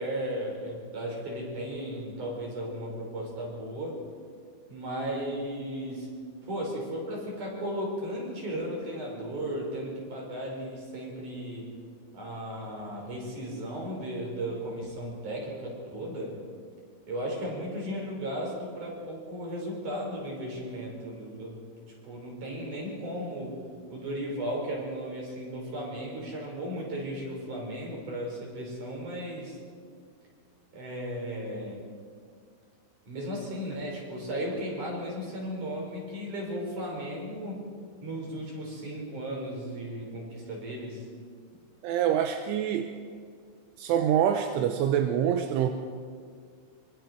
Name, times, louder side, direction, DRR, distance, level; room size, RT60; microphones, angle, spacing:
voice 1, 0.0-4.0 4.7-6.1 6.4-11.7 12.1-16.4 17.1-21.6 22.0-23.6 23.9-29.6 30.7-31.8 33.1-37.6 38.0-41.1, equal, 40° right, -2 dB, 6.4 m, -35 dB
voice 2, 41.8-42.9 43.8-45.7, right 9 dB, 80° right, 6 dB, 3.2 m, -25 dB
25.5 x 24.5 x 4.6 m, 2.1 s
omnidirectional pair, 5.9 m